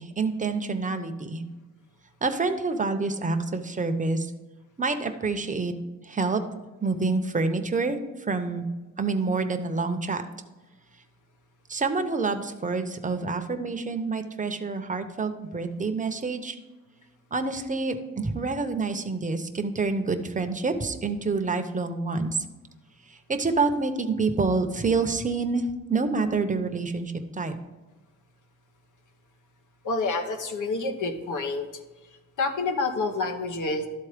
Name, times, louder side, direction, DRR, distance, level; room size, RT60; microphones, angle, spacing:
voice 1, 0.0-1.4 2.2-4.3 4.8-5.7 6.0-6.4 6.8-8.0 8.3-8.6 9.0-10.2 11.7-16.6 17.3-22.4 23.1-27.6, right 3 dB, 25° right, 7 dB, 0.8 m, -27 dB
voice 2, 29.8-31.7 32.4-33.9, left 3 dB, 80° left, 6 dB, 1.1 m, -28 dB
12.0 x 4.1 x 5.0 m, 1.2 s
wide cardioid pair, 105°, 30 cm